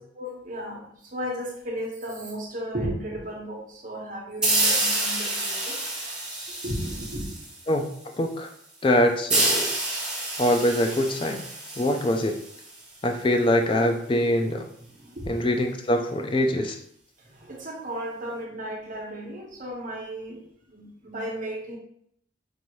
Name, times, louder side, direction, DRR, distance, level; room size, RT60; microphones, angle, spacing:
voice 1, 0.1-0.8 1.1-5.8 6.5-7.3 14.9-15.5 17.2-20.4 20.7-21.8, equal, 40° right, -3 dB, 1.1 m, -34 dB
sound 1, 4.4-7.8 9.3-12.8, right 2 dB, 5° right, 1.4 m, -28 dB
voice 2, 8.2-8.5 8.8-9.7 10.4-11.4 11.8-12.4 13.0-14.6 15.3-16.8, left 1 dB, 25° left, 4 dB, 0.4 m, -23 dB
5.4 x 2.6 x 3.0 m, 0.69 s
head